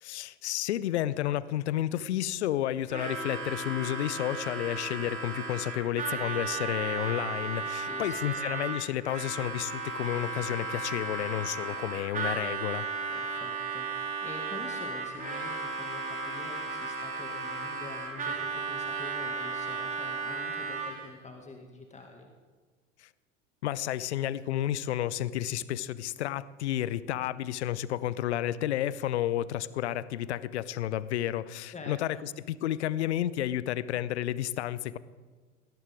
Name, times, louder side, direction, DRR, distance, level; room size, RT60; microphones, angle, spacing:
voice 1, 0.0-12.9 23.0-23.1 23.6-35.0, left 12 dB, 60° left, 19 dB, 0.7 m, -31 dB
Harmonica, 2.9-21.1, right 4 dB, 20° right, 4.4 m, -35 dB
voice 2, 7.9-8.4 13.1-22.3 31.7-32.3, left 3 dB, 20° left, 3 dB, 2.1 m, -46 dB
19.5 x 18.0 x 3.6 m, 1.5 s
figure-of-eight pair, 75°, 37 cm